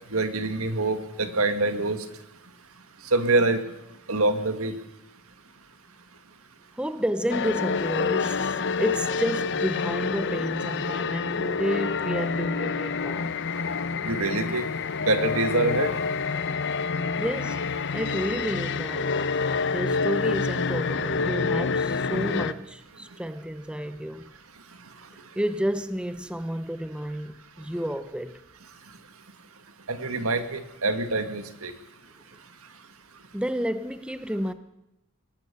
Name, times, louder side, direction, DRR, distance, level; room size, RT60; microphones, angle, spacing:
voice 1, 0.1-2.0 3.1-3.6 4.1-4.7 14.1-14.7 15.0-16.0 29.9-31.7, right 2 dB, 70° right, 2.0 m, -25 dB
voice 2, 6.8-13.3 17.2-17.6 17.9-19.2 19.7-24.3 25.3-28.4 33.3-34.5, equal, 5° right, 0.7 m, -31 dB
sound 1, 7.3-22.5, left 4 dB, 55° left, 0.8 m, -27 dB
22.0 x 18.0 x 6.9 m
head